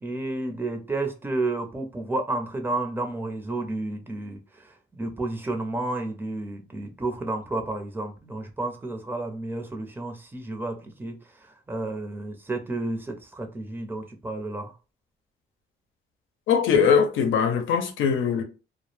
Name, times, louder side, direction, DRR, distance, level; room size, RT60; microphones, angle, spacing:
voice 1, 0.0-11.2 11.7-14.7, right 2 dB, 10° right, 0.6 m, -31 dB
voice 2, 16.5-18.4, left 6 dB, 80° left, 0.6 m, -21 dB
2.1 x 2.0 x 3.2 m
cardioid pair, 90°, 20 cm